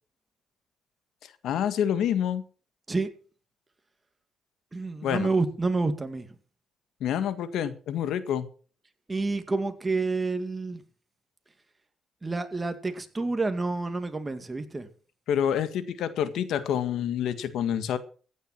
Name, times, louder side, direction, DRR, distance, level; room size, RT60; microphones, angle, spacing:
voice 1, 1.4-2.4 5.0-5.3 7.0-8.5 15.3-18.0, left 9 dB, 80° left, 1.7 m, -27 dB
voice 2, 4.7-6.3 9.1-10.8 12.2-14.9, right 3 dB, 20° right, 2.2 m, -28 dB
15.5 x 9.5 x 5.9 m
cardioid pair, 90°, 0 cm